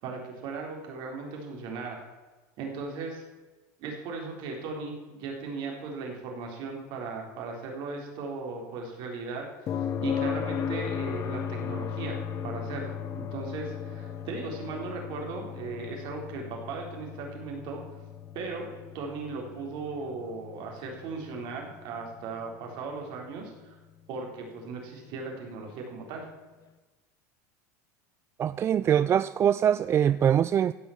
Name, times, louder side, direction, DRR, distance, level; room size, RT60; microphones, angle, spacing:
voice 1, 0.0-2.0 2.6-3.2 3.8-9.5 10.0-17.8 18.3-18.7 18.9-23.8 24.1-26.3, right 4 dB, 55° right, 1 dB, 3.9 m, -37 dB
sound 1, 9.7-23.5 25.8-25.9, left 7 dB, 40° left, 1.0 m, -36 dB
voice 2, 28.4-30.7, right 9 dB, 30° right, 15 dB, 0.3 m, -23 dB
15.5 x 6.3 x 7.3 m, 1.2 s
supercardioid pair, 110°, 9 cm